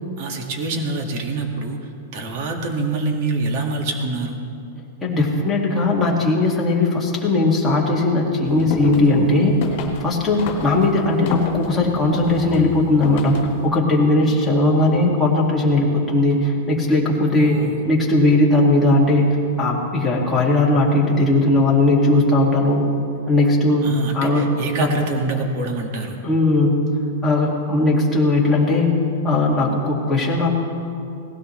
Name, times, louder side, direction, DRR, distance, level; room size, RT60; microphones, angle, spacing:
voice 1, 0.2-1.8 2.1-4.4 17.3-17.8 23.8-26.2, right 2 dB, 45° right, 2 dB, 2.0 m, -25 dB
voice 2, 5.0-9.6 10.0-13.4 13.6-22.8 23.3-24.5 24.8-24.9 26.2-26.8 27.2-29.0 29.2-30.5, left 2 dB, 5° left, -5 dB, 2.3 m, -18 dB
sound 1, 8.5-13.7, left 5 dB, 45° left, 2.4 m, -32 dB
18.5 x 16.0 x 3.3 m, 2.6 s
supercardioid pair, 160°, 0 cm